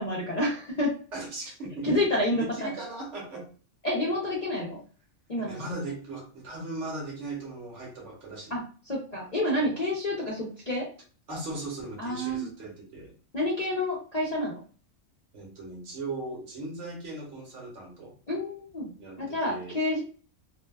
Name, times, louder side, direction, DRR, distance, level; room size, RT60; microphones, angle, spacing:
voice 1, 0.0-0.9 1.8-2.7 3.8-4.8 5.3-5.6 8.5-8.6 8.9-10.9 12.0-12.5 13.3-14.6 18.3-18.9 19.2-20.0, left 1 dB, 45° left, -6 dB, 0.6 m, -28 dB
voice 2, 1.1-1.9 2.3-3.5 5.4-8.6 11.3-13.1 15.3-18.1 19.0-19.8, right 2 dB, 60° right, -2 dB, 1.1 m, -38 dB
2.6 x 2.1 x 2.2 m, 0.38 s
omnidirectional pair, 1.4 m